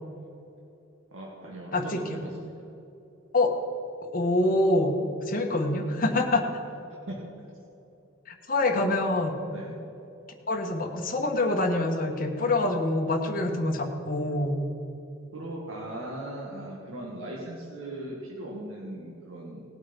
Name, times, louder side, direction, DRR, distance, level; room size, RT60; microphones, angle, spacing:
voice 1, 1.1-2.5 7.1-7.2 8.7-8.9 9.5-9.8 15.3-19.6, right 1 dB, 75° right, -3 dB, 1.9 m, -38 dB
voice 2, 1.7-2.2 3.3-3.5 4.1-5.0 5.2-6.5 8.3-9.3 10.5-14.6, left 2 dB, 40° left, 2 dB, 1.4 m, -25 dB
18.0 x 8.0 x 5.3 m, 2.8 s
head